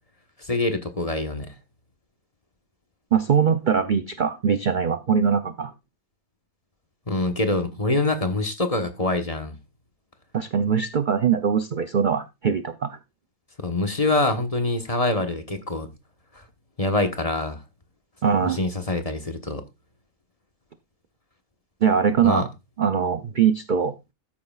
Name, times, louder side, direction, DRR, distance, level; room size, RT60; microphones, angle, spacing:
voice 1, 0.4-1.5 7.1-9.6 13.6-15.9 16.3-16.4 16.8-17.6 18.4-19.6 22.2-22.4, left 2 dB, 25° left, 1.2 m, -25 dB
voice 2, 3.1-5.7 10.3-13.0 18.2-18.6 21.8-22.5 22.8-23.9, right 7 dB, 50° right, 0.6 m, -22 dB
13.5 x 9.5 x 2.4 m
omnidirectional pair, 1.5 m